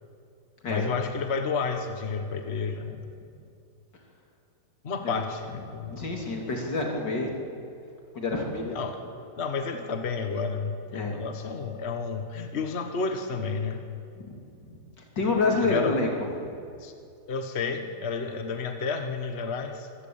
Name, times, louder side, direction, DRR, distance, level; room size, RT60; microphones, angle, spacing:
voice 1, 0.7-3.0 4.8-6.0 8.7-9.0 9.4-13.8 15.6-15.9 16.8-16.9 17.3-19.9, left 5 dB, 40° left, 6 dB, 1.5 m, -31 dB
voice 2, 5.7-7.3 8.2-8.8 10.9-11.1 14.2-14.4 14.7-14.8 15.2-16.1, left 3 dB, 85° left, 0 dB, 3.7 m, -28 dB
25.0 x 15.5 x 8.7 m, 2.5 s
omnidirectional pair, 1.8 m